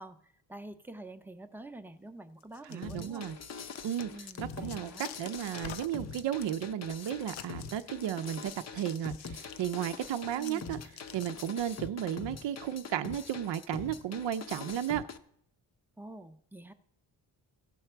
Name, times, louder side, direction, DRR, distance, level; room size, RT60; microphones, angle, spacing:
voice 1, 0.0-3.3 4.1-5.1 10.4-10.8 16.0-16.7, right 2 dB, 5° right, 6 dB, 0.6 m, -47 dB
sound 1, 2.4-11.8, left 9 dB, 85° left, 0.7 m, -49 dB
voice 2, 2.7-3.3 3.8-4.1 4.4-10.8 11.1-15.0, right 10 dB, 70° right, 9 dB, 0.6 m, -34 dB
sound 2, 2.8-15.2, left 5 dB, 35° left, 0.6 m, -44 dB
16.0 x 5.8 x 4.4 m, 0.69 s
wide cardioid pair, 130°, 45 cm